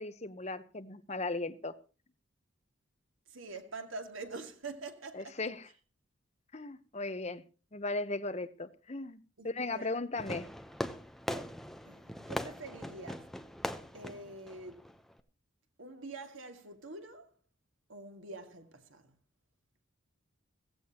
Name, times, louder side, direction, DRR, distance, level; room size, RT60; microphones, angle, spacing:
voice 1, 0.0-1.7 5.1-5.7 6.5-7.4 7.7-10.5, left 2 dB, 35° left, 1.0 m, -37 dB
voice 2, 3.3-5.5 9.4-10.0 11.3-11.6 11.9-13.3 13.9-14.9 15.8-17.3 17.9-19.1, right 3 dB, 85° right, 2.2 m, -46 dB
Fireworks, 10.2-15.2, equal, ahead, 0.8 m, -41 dB
16.5 x 15.5 x 3.0 m
head